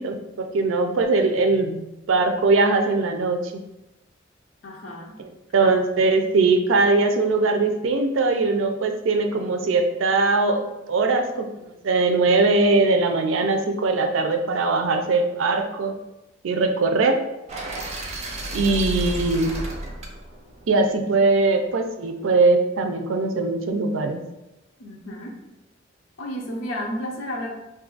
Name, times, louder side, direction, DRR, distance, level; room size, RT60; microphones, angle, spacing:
voice 1, 0.0-3.6 5.2-15.9 16.4-17.2 18.5-19.5 20.7-24.2, right 3 dB, 85° right, 5 dB, 0.4 m, -21 dB
voice 2, 4.6-5.2 5.6-5.7 9.2-9.3 9.6-9.7 18.4-18.7 19.5-19.7 24.8-25.4 26.2-27.6, equal, 75° left, -1 dB, 0.6 m, -33 dB
sound 1, 17.5-21.5, right 1 dB, 35° right, 0.5 m, -32 dB
2.6 x 2.4 x 3.8 m, 0.96 s
head